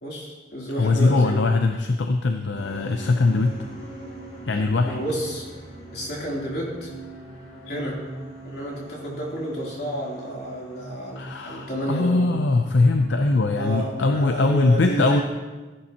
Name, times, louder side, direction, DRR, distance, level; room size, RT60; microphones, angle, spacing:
voice 1, 0.0-1.4 4.8-5.5 5.9-6.9 7.7-8.0 8.4-12.2 13.6-15.2, right 1 dB, 60° left, -4 dB, 3.2 m, -31 dB
voice 2, 0.8-3.6 4.5-4.9 11.2-15.2, left 3 dB, 80° left, 6 dB, 0.6 m, -21 dB
sound 1, 2.5-13.5, right 2 dB, 40° left, 2.9 m, -41 dB
14.5 x 11.0 x 2.9 m, 1.3 s
head